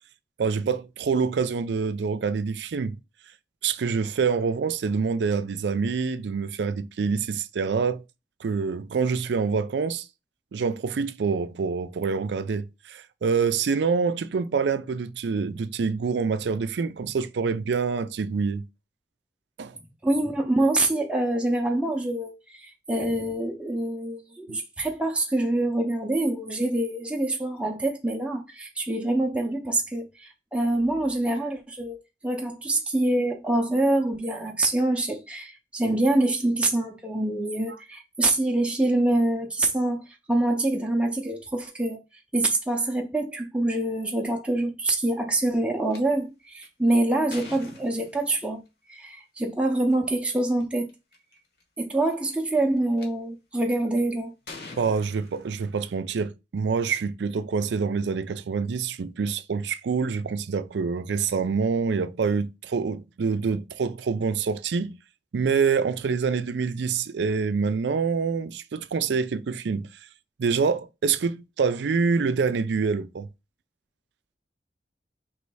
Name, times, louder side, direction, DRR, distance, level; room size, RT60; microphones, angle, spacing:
voice 1, 0.4-3.0 3.6-8.0 8.4-10.0 10.5-18.6 19.6-19.7 24.5-24.6 54.8-64.9 65.3-69.9 70.4-73.3, right 5 dB, 75° right, 0.4 m, -26 dB
voice 2, 20.0-42.0 42.3-48.6 48.9-50.9 51.8-54.3, right 2 dB, 5° right, 0.5 m, -25 dB
sound 1, 45.9-46.0 46.6-48.5 49.8-49.9 50.6-50.7 50.9-51.3 52.1-53.1 53.7-54.0 54.5-55.9, left 3 dB, 60° left, 1.1 m, -44 dB
3.1 x 3.1 x 4.6 m
head